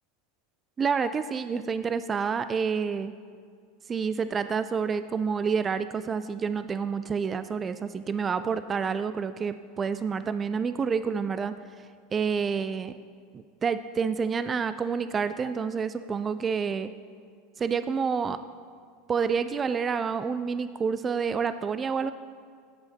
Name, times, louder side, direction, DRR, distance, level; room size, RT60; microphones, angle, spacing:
voice 1, 0.8-3.1 3.9-11.9 12.1-12.9 13.3-16.9 17.6-18.4 19.1-22.1, right 6 dB, 25° right, 12 dB, 0.3 m, -28 dB
15.5 x 5.6 x 4.4 m, 2.1 s
hypercardioid pair, 90°, 0 cm